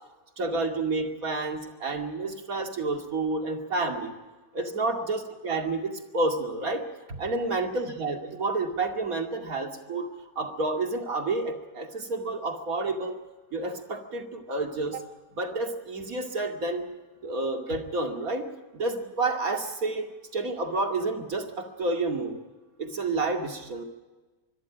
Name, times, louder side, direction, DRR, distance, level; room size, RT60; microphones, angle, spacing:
voice 1, 0.4-4.1 4.5-10.1 10.4-13.2 13.5-15.0 15.3-16.9 17.2-22.4 22.8-23.8, right 3 dB, 85° right, 3 dB, 2.9 m, -30 dB
25.0 x 23.0 x 5.1 m, 1.2 s
omnidirectional pair, 1.5 m